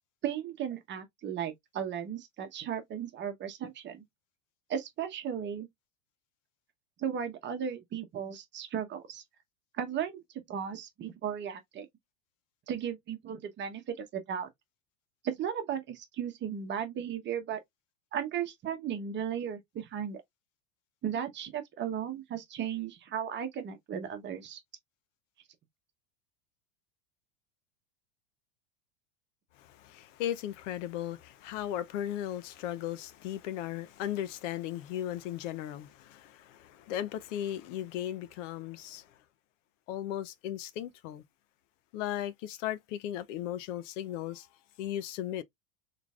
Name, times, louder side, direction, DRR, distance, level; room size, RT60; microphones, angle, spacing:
voice 1, 0.2-4.0 4.7-5.7 7.0-9.2 9.7-10.2 10.5-11.9 12.7-14.5 15.2-17.6 18.1-20.2 21.0-24.6, right 8 dB, 30° right, 1.0 m, -35 dB
voice 2, 29.6-39.1 39.9-41.2 41.9-44.5 44.8-45.4, left 11 dB, 70° left, 0.7 m, -36 dB
3.8 x 3.3 x 2.3 m
supercardioid pair, 140°, 38 cm